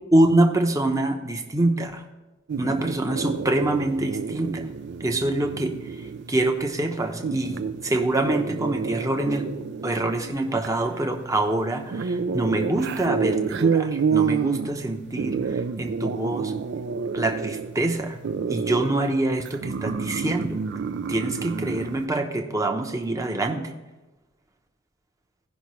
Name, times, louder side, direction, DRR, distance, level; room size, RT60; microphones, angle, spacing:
voice 1, 0.1-2.0 2.6-4.7 5.0-5.8 6.3-9.5 9.8-16.5 17.1-18.2 18.5-20.6 21.1-23.7, right 1 dB, 15° right, 4 dB, 0.8 m, -25 dB
sound 1, 2.5-22.1, right 5 dB, 55° right, 0.4 m, -29 dB
16.5 x 5.7 x 3.1 m, 1.1 s
head